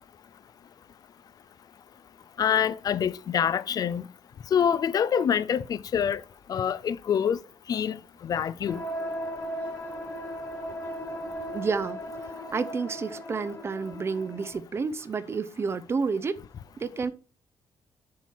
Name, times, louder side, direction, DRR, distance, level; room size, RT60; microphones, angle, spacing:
voice 1, 2.4-4.1 4.5-6.2 6.5-7.4 7.7-8.8, left 8 dB, 50° left, 0.4 m, -26 dB
sound 1, 8.7-14.5, equal, 25° left, 1.8 m, -37 dB
voice 2, 11.5-12.0 12.5-16.4 16.8-17.1, right 5 dB, 30° right, 0.6 m, -30 dB
7.1 x 4.5 x 4.6 m
cardioid pair, 125°, 8 cm